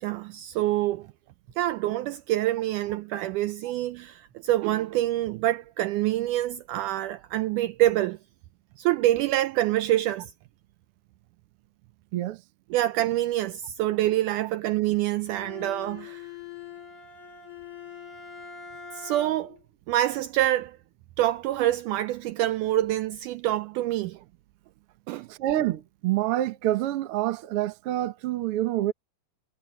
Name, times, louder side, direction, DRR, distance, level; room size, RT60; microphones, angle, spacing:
voice 1, 0.0-1.1 1.6-8.2 8.8-10.3 12.7-16.3 19.0-19.6 19.9-20.8 21.2-24.2 25.1-25.3, right 14 dB, 80° right, 1.9 m, -26 dB
Bowed string instrument, 15.3-19.6, left 7 dB, 60° left, 7.4 m, -43 dB
voice 2, 25.3-28.9, right 14 dB, 65° right, 1.4 m, -27 dB
omnidirectional pair, 4.0 m